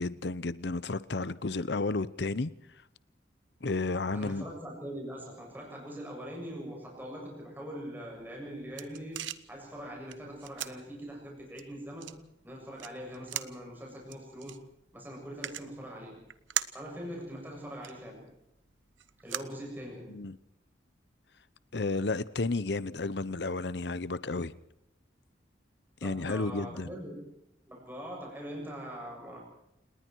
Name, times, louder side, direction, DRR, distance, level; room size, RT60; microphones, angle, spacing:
voice 1, 0.0-2.5 3.6-4.4 20.1-20.4 21.7-24.5 26.0-26.9, left 3 dB, 65° left, 0.8 m, -32 dB
voice 2, 4.1-14.6 14.9-16.2 16.7-18.3 19.2-20.1 26.0-27.3 27.7-29.4, equal, 10° right, 7.3 m, -42 dB
sound 1, 8.2-20.3, right 11 dB, 85° right, 1.1 m, -43 dB
28.5 x 20.0 x 4.7 m
head